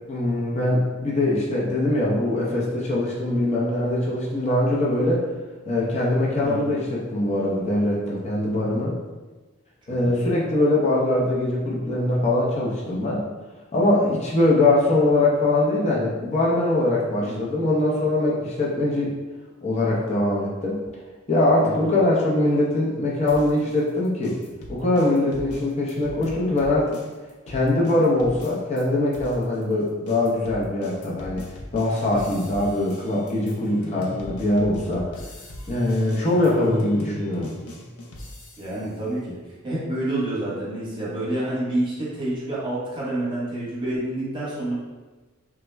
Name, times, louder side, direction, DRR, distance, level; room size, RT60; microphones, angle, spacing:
voice 1, 0.1-5.2 5.7-8.9 9.9-13.3 13.7-19.1 19.6-20.8 21.3-24.4 24.7-26.9 27.5-31.4 31.7-35.0 35.7-37.5, left 1 dB, 30° left, -4 dB, 0.5 m, -22 dB
voice 2, 9.9-10.2 17.2-17.4 21.6-21.9 38.6-44.7, right 1 dB, 20° right, -8 dB, 0.9 m, -28 dB
sound 1, 23.3-28.9 29.1-38.9, left 1 dB, 85° left, 0.5 m, -40 dB
3.4 x 2.0 x 3.2 m, 1.3 s
head